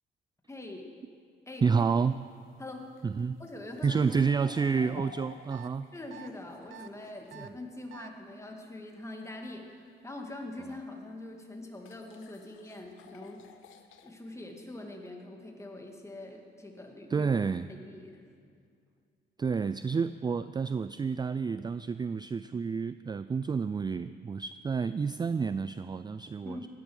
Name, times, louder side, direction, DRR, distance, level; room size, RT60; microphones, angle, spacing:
voice 1, 0.5-0.9 1.5-1.9 2.6-2.9 3.4-4.5 5.9-13.5 14.0-17.3 17.7-18.2 26.4-26.7, left 2 dB, 15° left, 2 dB, 2.3 m, -43 dB
voice 2, 1.6-2.2 3.0-3.4 3.8-5.9 7.4-7.5 17.1-17.7 19.4-26.7, right 5 dB, 20° right, 14 dB, 0.3 m, -29 dB
sound 1, 1.9-7.5 10.6-10.7 11.8-14.1, left 7 dB, 80° left, 1.0 m, -54 dB
sound 2, 5.5-5.7 6.1-6.3 6.7-6.9 7.3-7.5 7.9-8.1, right 12 dB, 70° right, 0.5 m, -47 dB
16.0 x 10.5 x 6.3 m, 2.3 s
cardioid pair, 90°, 20 cm